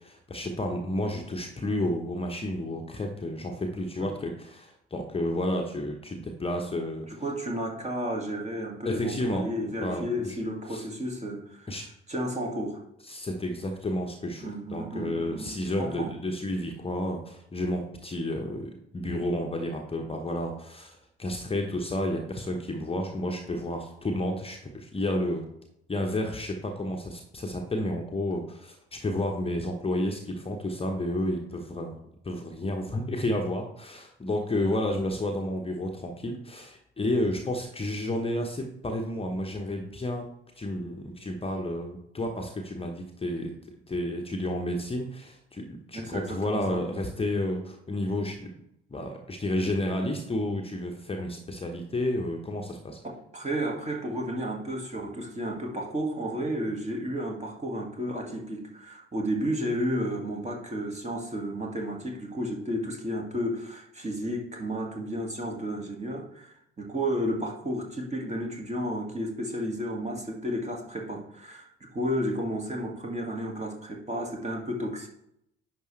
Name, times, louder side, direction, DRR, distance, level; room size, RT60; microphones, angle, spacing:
voice 1, 0.0-7.2 8.8-9.5 9.8-10.4 10.7-10.9 11.7-11.8 13.1-25.4 25.9-32.0 32.2-40.3 40.6-43.5 43.9-48.5 48.9-53.0, left 1 dB, 20° left, 2 dB, 1.1 m, -31 dB
voice 2, 7.1-11.8 12.1-12.8 14.4-15.5 15.8-16.2 45.9-46.8 53.0-75.1, equal, 20° right, 0 dB, 2.0 m, -32 dB
10.5 x 5.4 x 3.3 m, 0.78 s
figure-of-eight pair, 50°, 31 cm